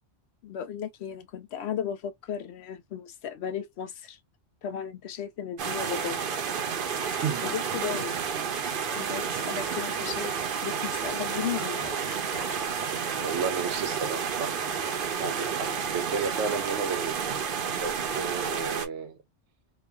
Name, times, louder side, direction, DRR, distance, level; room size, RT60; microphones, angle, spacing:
voice 1, 0.4-4.2 4.6-6.2 6.7-6.9 7.4-8.2 8.9-10.3 10.6-11.8, left 8 dB, 70° left, 0.8 m, -35 dB
sound 1, 5.6-18.9, right 6 dB, 60° right, 0.7 m, -31 dB
Toilet flush, 6.0-15.1, left 1 dB, 25° left, 0.7 m, -49 dB
voice 2, 7.2-7.5 9.2-9.3 13.2-14.5 15.0-17.2 17.8-19.2, right 6 dB, 85° right, 1.0 m, -32 dB
3.1 x 2.2 x 2.2 m
omnidirectional pair, 1.2 m